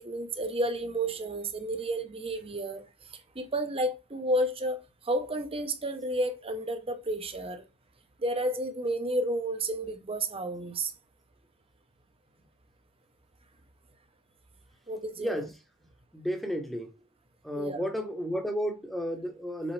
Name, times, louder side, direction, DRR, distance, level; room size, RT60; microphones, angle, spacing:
voice 1, 0.0-7.6 8.2-10.9 14.9-15.5 17.5-17.8, right 1 dB, 25° right, 1.0 m, -31 dB
voice 2, 15.2-15.5 16.1-16.9 17.4-19.7, equal, ahead, 1.2 m, -32 dB
7.5 x 4.1 x 3.4 m
head